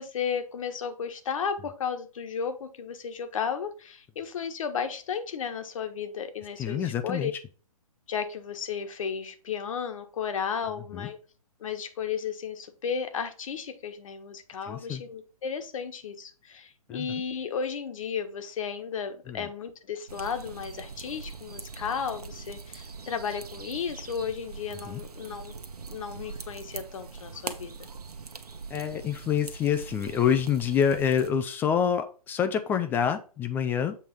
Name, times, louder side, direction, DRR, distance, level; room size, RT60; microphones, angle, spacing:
voice 1, 0.0-7.3 8.1-11.2 11.6-25.5 25.9-27.7, left 6 dB, 55° left, 7 dB, 1.4 m, -34 dB
voice 2, 6.6-7.3 10.9-11.1 14.6-15.0 16.9-17.1 19.3-19.5 24.9-25.0 28.7-34.0, left 8 dB, 10° left, 8 dB, 0.3 m, -27 dB
sound 1, 20.1-31.3, right 4 dB, 75° right, 1.1 m, -42 dB
7.6 x 3.4 x 5.8 m, 0.37 s
figure-of-eight pair, 125°, 20 cm